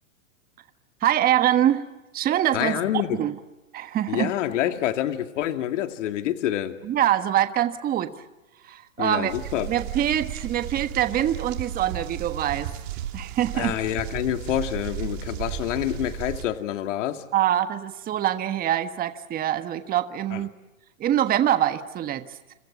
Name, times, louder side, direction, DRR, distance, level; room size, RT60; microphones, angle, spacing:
voice 1, 1.0-1.8 2.1-3.3 3.7-4.3 6.8-8.1 8.6-9.3 9.7-12.7 13.1-13.8 17.3-20.5 21.0-22.2, right 11 dB, 20° right, 9 dB, 1.4 m, -24 dB
voice 2, 2.5-3.2 4.1-6.8 9.0-9.7 13.5-17.2 20.3-20.4, left 12 dB, 60° left, 7 dB, 2.4 m, -27 dB
sound 1, 9.3-16.5, right 11 dB, 50° right, 3.3 m, -34 dB
28.5 x 27.0 x 7.4 m, 1.1 s
hypercardioid pair, 130°, 41 cm